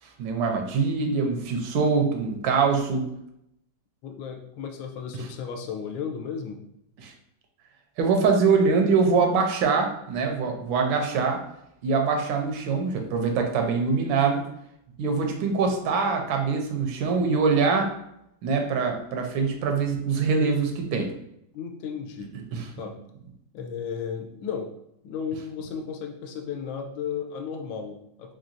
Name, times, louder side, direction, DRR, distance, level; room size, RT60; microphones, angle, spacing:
voice 1, 0.2-3.1 7.0-7.1 8.0-11.4 11.8-14.4 15.0-17.9 18.4-21.1 22.5-22.7, right 5 dB, 85° right, 3 dB, 1.4 m, -23 dB
voice 2, 4.0-6.6 21.5-22.4 22.8-23.0 23.5-24.7 25.0-28.3, left 7 dB, 80° left, 3 dB, 1.3 m, -34 dB
3.8 x 3.2 x 2.6 m, 0.78 s
omnidirectional pair, 2.1 m